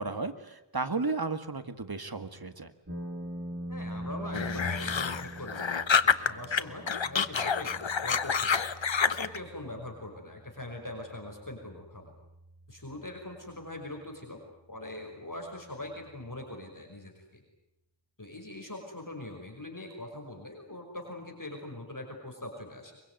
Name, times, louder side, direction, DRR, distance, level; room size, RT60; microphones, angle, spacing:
voice 1, 0.0-2.7, right 3 dB, 55° right, 10 dB, 1.9 m, -34 dB
sound 1, 2.9-16.9, equal, 30° right, 6.2 m, -45 dB
voice 2, 3.7-8.6 9.0-12.1 12.7-14.4 14.7-17.4 18.2-23.0, left 1 dB, 45° left, 2 dB, 5.7 m, -42 dB
sound 2, 4.3-6.6 6.9-9.4, left 6 dB, 85° left, 1.0 m, -27 dB
23.5 x 23.0 x 9.3 m, 0.88 s
wide cardioid pair, 45°, 45 cm